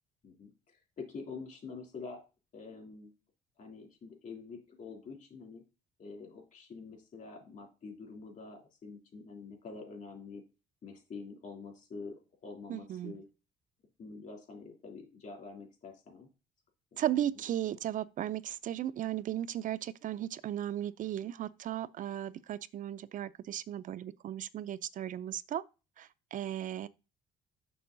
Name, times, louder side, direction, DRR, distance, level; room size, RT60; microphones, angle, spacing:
voice 1, 0.2-2.2 2.5-3.1 3.6-5.6 6.0-10.4 10.8-13.2 14.0-16.3, left 4 dB, 50° left, 3.1 m, -46 dB
voice 2, 12.7-13.1 17.0-25.6 26.0-26.9, right 11 dB, 50° right, 0.5 m, -36 dB
6.8 x 6.6 x 3.9 m
cardioid pair, 110°, 17 cm